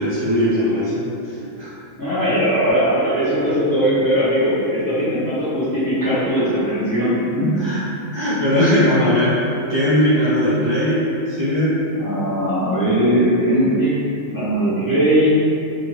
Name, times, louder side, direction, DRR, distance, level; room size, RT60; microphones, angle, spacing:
voice 1, 0.0-1.7 7.4-7.8 8.1-9.4 9.7-11.8, left 1 dB, 30° right, -13 dB, 0.5 m, -19 dB
voice 2, 2.0-7.5 12.0-13.9 14.3-15.3, equal, 20° left, -13 dB, 0.6 m, -19 dB
2.5 x 2.4 x 3.1 m, 2.8 s
omnidirectional pair, 1.4 m